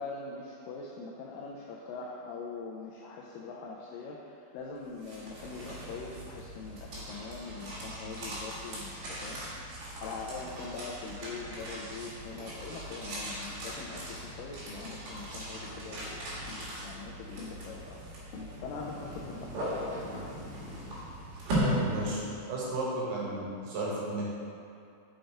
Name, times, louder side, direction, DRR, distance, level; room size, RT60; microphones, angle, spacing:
voice 1, 0.0-9.4 10.0-18.0 18.6-20.2, left 4 dB, 85° left, -2 dB, 1.9 m, -43 dB
sound 1, 4.8-22.8, equal, 70° right, 3.6 m, -38 dB
sound 2, 12.0-12.1 12.3-13.4 13.9-14.3 14.8-15.2 15.6-15.9 16.5-16.8 17.4-17.6 18.3-18.9 19.3-19.6 20.0-20.5, left 3 dB, 60° left, 2.0 m, -47 dB
sound 3, 18.6-21.7, equal, 45° right, 1.8 m, -46 dB
voice 2, 21.6-22.2 22.5-24.2, right 2 dB, 90° right, -6 dB, 3.5 m, -33 dB
6.5 x 5.2 x 4.5 m, 2.6 s
omnidirectional pair, 4.5 m